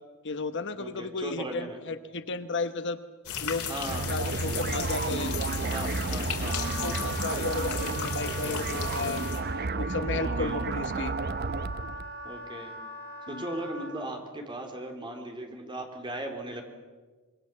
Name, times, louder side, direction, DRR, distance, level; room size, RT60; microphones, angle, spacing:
voice 1, 0.2-3.0 3.4-5.3 6.5-6.6 6.8-9.2 9.8-11.1 13.3-13.4, left 3 dB, 55° left, 11 dB, 1.0 m, -34 dB
voice 2, 0.8-1.8 3.7-4.2 5.7-6.6 7.9-8.1 10.2-10.6 12.2-12.7 13.3-16.6, right 1 dB, 20° right, 3 dB, 3.9 m, -37 dB
sound 1, 3.3-9.4, left 6 dB, 80° left, 4.0 m, -35 dB
sound 2, 3.9-12.1, right 3 dB, 45° right, 0.7 m, -32 dB
Wind instrument woodwind instrument, 6.4-14.0, right 1 dB, 70° right, 4.3 m, -40 dB
26.0 x 23.0 x 7.6 m, 1.4 s
head